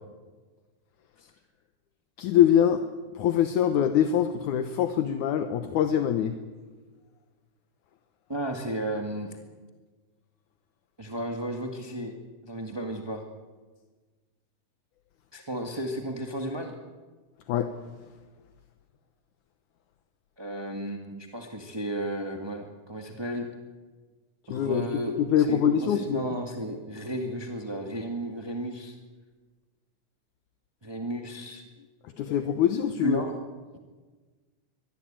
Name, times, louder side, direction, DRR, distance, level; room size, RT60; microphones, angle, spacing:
voice 1, 2.2-2.8 3.2-6.3 17.5-17.7 24.5-24.8 25.2-26.3 32.2-33.2, left 9 dB, 70° left, 8 dB, 2.4 m, -24 dB
voice 2, 8.3-9.3 11.0-12.1 12.4-13.2 15.3-16.7 20.4-23.5 24.5-29.0 30.8-31.6 33.0-33.4, right 1 dB, 15° right, 2 dB, 0.9 m, -33 dB
24.0 x 20.5 x 8.9 m, 1.4 s
omnidirectional pair, 3.7 m